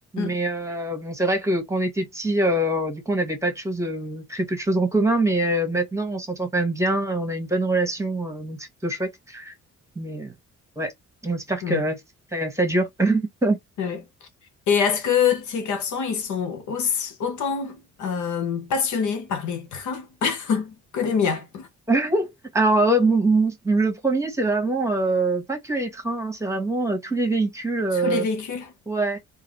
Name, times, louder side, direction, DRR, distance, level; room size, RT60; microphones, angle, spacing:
voice 1, 0.1-9.5 9.9-10.3 10.8-10.9 11.2-12.0 12.3-13.6 21.9-28.3 28.9-29.2, right 2 dB, 10° right, 1.6 m, -24 dB
voice 2, 14.7-21.7 27.9-28.7, left 6 dB, 75° left, 1.1 m, -25 dB
3.8 x 2.8 x 3.1 m
cardioid pair, 90°, 30 cm